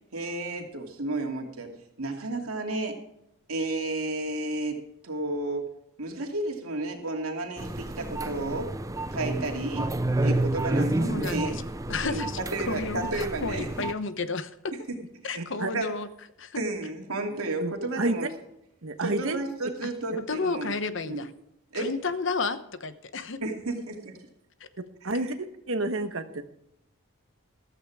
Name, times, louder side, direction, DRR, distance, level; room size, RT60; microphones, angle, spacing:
voice 1, 0.1-1.7 2.0-3.0 3.5-5.7 6.0-8.7 9.1-9.9 10.2-11.6 12.0-12.2 12.5-13.7 14.9-15.0 15.2-15.4 15.7-15.9 16.6-18.3 19.0-20.7 21.0-21.2 21.7-21.9 23.4-24.0 25.0-25.3, right 2 dB, 90° right, 2 dB, 2.8 m, -32 dB
sound 1, 7.6-13.9, right 2 dB, 15° right, 0.5 m, -30 dB
voice 2, 11.0-11.6 11.9-12.4 12.7-14.7 15.2-16.1 16.4-16.6 19.8-19.9 20.2-21.3 21.7-23.4, left 4 dB, 60° left, 12 dB, 1.0 m, -32 dB
voice 3, 15.4-15.7 17.3-18.2 18.8-19.4 25.0-26.4, right 2 dB, 70° right, 8 dB, 1.3 m, -30 dB
15.0 x 13.5 x 3.6 m, 0.81 s
head